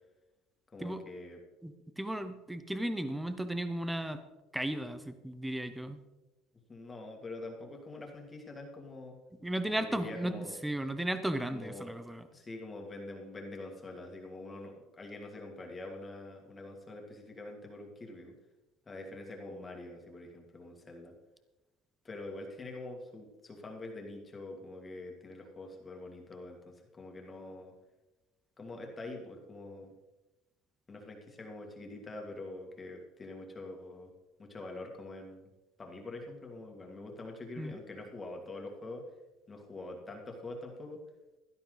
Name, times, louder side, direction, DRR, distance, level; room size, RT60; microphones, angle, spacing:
voice 1, 0.7-1.4 6.7-9.2 9.6-10.5 11.5-12.0 12.3-18.3 18.9-21.1 22.0-27.7 28.6-29.9 30.9-34.1 34.4-35.5 35.8-39.1 39.5-41.0, left 2 dB, 15° left, 1 dB, 2.3 m, -45 dB
voice 2, 1.6-4.2 4.5-6.0 9.4-10.3 10.6-12.3 37.6-37.7, right 1 dB, 5° right, 10 dB, 0.8 m, -35 dB
16.5 x 12.0 x 4.0 m, 1.0 s
cardioid pair, 155°, 0 cm